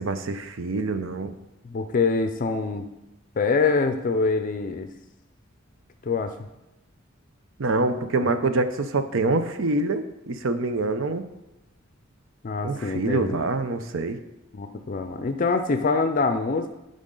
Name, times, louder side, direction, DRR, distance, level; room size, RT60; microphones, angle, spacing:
voice 1, 0.0-1.3 7.6-11.3 12.6-14.2, right 3 dB, 70° right, 10 dB, 0.6 m, -25 dB
voice 2, 1.6-2.9 3.4-4.9 6.0-6.3 12.4-13.5 14.5-16.7, left 4 dB, 40° left, 8 dB, 0.4 m, -25 dB
10.5 x 5.2 x 3.8 m, 0.97 s
head